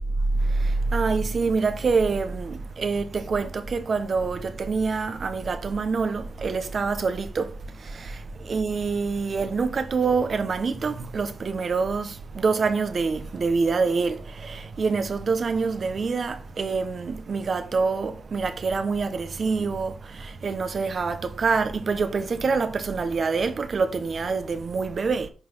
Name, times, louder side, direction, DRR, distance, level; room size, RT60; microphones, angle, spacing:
voice 1, 0.6-7.5 7.8-8.2 8.4-25.3, right 4 dB, 45° right, 1.2 m, -26 dB
10.0 x 4.2 x 5.7 m
wide cardioid pair, 145°, 0 cm